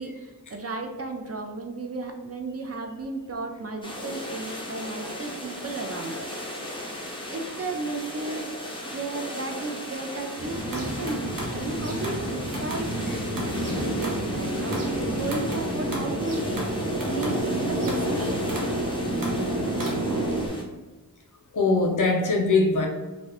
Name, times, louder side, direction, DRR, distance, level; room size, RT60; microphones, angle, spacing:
voice 1, 0.0-6.8 7.3-8.5 8.9-12.9 13.7-18.6, right 3 dB, 40° right, 4 dB, 0.4 m, -34 dB
sound 1, 3.8-20.6, left 1 dB, 15° left, 0.7 m, -37 dB
sound 2, 10.4-20.5, right 1 dB, 65° right, 0.8 m, -29 dB
voice 2, 21.5-22.9, left 3 dB, 55° left, 1 dB, 0.7 m, -22 dB
2.6 x 2.4 x 3.3 m, 1.2 s
cardioid pair, 45°, 37 cm